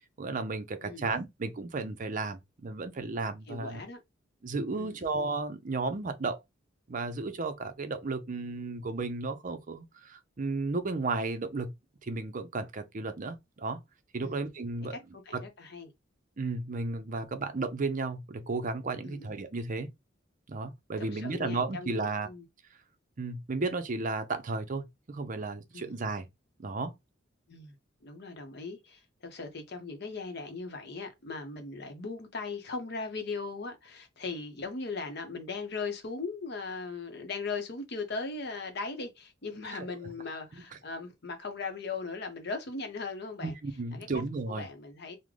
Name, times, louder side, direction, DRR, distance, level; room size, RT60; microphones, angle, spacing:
voice 1, 0.2-3.8 4.4-6.4 6.9-11.7 12.0-13.8 14.1-15.0 15.3-15.4 16.4-19.9 20.5-22.3 23.2-26.3 26.6-26.9 39.7-39.8 43.4-44.7, right 3 dB, 40° right, 0.5 m, -34 dB
voice 2, 3.5-4.0 4.8-5.1 14.2-14.4 14.9-15.9 19.0-19.3 21.0-22.5 25.7-26.0 27.5-27.7 28.0-43.6 43.9-44.1 44.5-45.2, left 4 dB, 60° left, 0.7 m, -39 dB
3.6 x 2.1 x 3.2 m
head